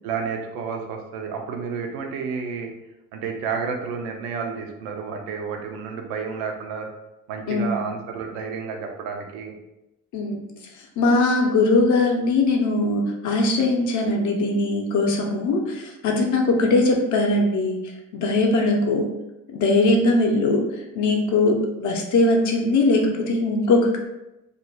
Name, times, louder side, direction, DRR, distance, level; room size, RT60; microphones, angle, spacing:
voice 1, 0.0-2.7 3.1-6.9 7.3-9.5, right 5 dB, 60° right, 3 dB, 0.6 m, -30 dB
voice 2, 10.1-10.5 11.0-19.1 19.5-24.0, left 2 dB, 45° left, 1 dB, 0.7 m, -21 dB
2.5 x 2.1 x 3.2 m, 0.93 s
hypercardioid pair, 55°, 40 cm